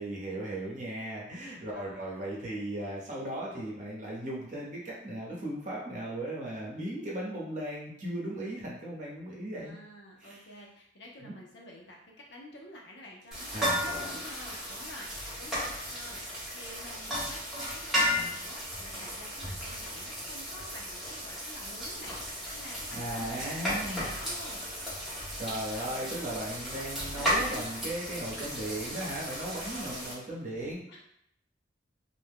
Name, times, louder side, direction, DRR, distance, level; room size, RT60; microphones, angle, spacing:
voice 1, 0.0-9.7 10.2-10.4 11.2-11.3 13.5-13.7 22.9-24.1 25.1-30.8, right 1 dB, 40° right, -4 dB, 0.9 m, -37 dB
voice 2, 1.7-2.1 9.5-24.6 27.1-27.6 29.5-30.1 30.9-31.0, left 1 dB, 65° left, -2 dB, 0.7 m, -49 dB
sound 1, 13.3-30.1, equal, ahead, 0.9 m, -35 dB
2.5 x 2.2 x 3.5 m, 0.71 s
head